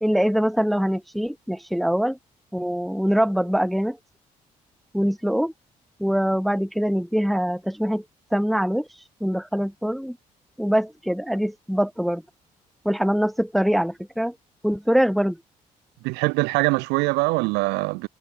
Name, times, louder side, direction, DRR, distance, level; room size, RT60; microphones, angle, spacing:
voice 1, 0.0-2.2 2.5-4.0 4.9-5.5 6.0-8.0 8.3-8.9 9.2-10.2 10.6-12.2 12.8-14.3 14.6-15.4, equal, ahead, 0.9 m, -23 dB
voice 2, 16.0-18.1, right 26 dB, 80° right, 0.4 m, -23 dB
hypercardioid pair, 50°, 18 cm